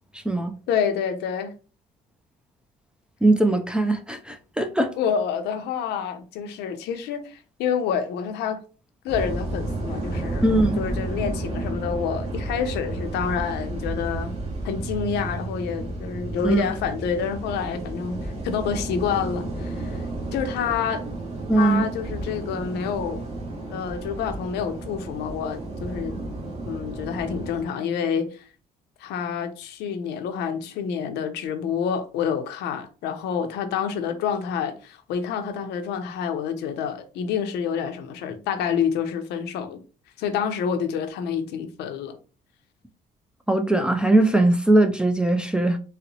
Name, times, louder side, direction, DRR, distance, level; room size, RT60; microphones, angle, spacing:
voice 1, 0.7-1.5 5.0-8.6 9.0-14.4 14.6-20.0 20.3-21.0 21.6-23.2 23.7-26.2 26.6-28.4 29.0-39.8 40.2-42.2, left 7 dB, 80° left, 0.6 m, -28 dB
voice 2, 3.2-4.9 10.4-10.8 16.4-16.7 21.5-21.9 43.5-45.8, right 2 dB, 5° right, 0.3 m, -20 dB
sound 1, 9.1-27.6, right 2 dB, 40° right, 1.1 m, -32 dB
4.0 x 2.1 x 2.7 m
cardioid pair, 110°, 17 cm